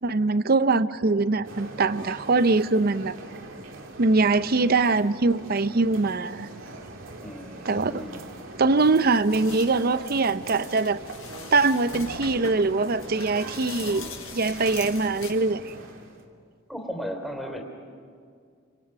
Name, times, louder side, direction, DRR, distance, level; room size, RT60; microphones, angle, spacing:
voice 1, 0.0-3.1 4.0-6.5 7.7-8.0 8.6-11.0 11.5-15.7, right 3 dB, 50° right, 14 dB, 0.6 m, -23 dB
sound 1, 1.4-16.3, right 2 dB, 75° right, 2.9 m, -42 dB
voice 2, 7.2-8.2 16.7-17.6, equal, ahead, 2 dB, 3.5 m, -35 dB
sound 2, 8.8-15.3, left 5 dB, 85° left, 6.6 m, -42 dB
29.0 x 26.0 x 6.2 m, 2.2 s
head